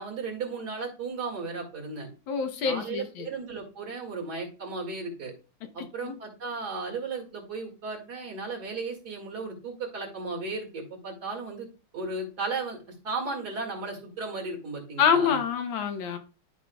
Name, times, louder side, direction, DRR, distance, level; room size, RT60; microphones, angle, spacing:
voice 1, 0.0-2.1 2.6-5.3 5.7-11.7 11.9-15.4, right 4 dB, 55° right, 2.6 m, -35 dB
voice 2, 2.3-3.3 6.0-6.1 15.0-16.2, left 7 dB, 90° left, 1.8 m, -26 dB
12.5 x 5.1 x 2.3 m
omnidirectional pair, 2.1 m